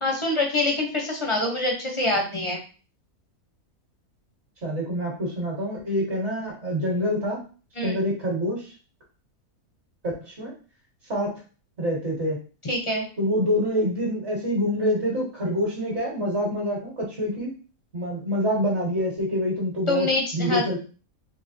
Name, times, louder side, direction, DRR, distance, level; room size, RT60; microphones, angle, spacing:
voice 1, 0.0-2.6 7.8-8.0 12.6-13.0 19.9-20.6, left 2 dB, 35° left, 0 dB, 0.5 m, -25 dB
voice 2, 4.6-7.4 7.8-8.7 10.0-10.5 11.1-11.3 11.8-12.4 13.2-17.5 17.9-20.8, equal, 45° right, -3 dB, 1.4 m, -26 dB
3.8 x 3.3 x 2.7 m, 0.36 s
omnidirectional pair, 1.6 m